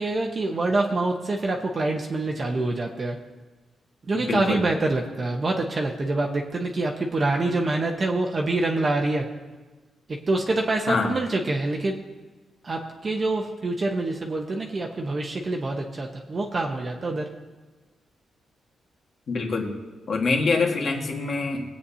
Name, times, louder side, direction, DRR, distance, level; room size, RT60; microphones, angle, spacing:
voice 1, 0.0-3.2 4.1-9.3 10.1-12.0 12.6-17.3, right 2 dB, 35° right, 1 dB, 1.0 m, -26 dB
voice 2, 4.1-4.6 10.9-11.1 19.3-19.7 20.1-21.8, left 4 dB, 55° left, 1 dB, 1.8 m, -25 dB
22.0 x 8.5 x 2.8 m, 1.3 s
cardioid pair, 120°, 0 cm